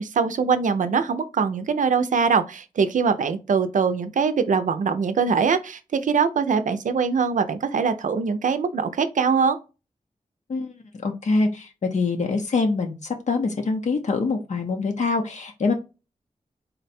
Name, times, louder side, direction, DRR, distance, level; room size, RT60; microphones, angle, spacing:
voice 1, 0.0-9.6, right 5 dB, 80° right, 0.5 m, -22 dB
voice 2, 11.0-15.7, left 3 dB, 65° left, 0.6 m, -24 dB
3.9 x 2.2 x 4.1 m
wide cardioid pair, 100°, 13 cm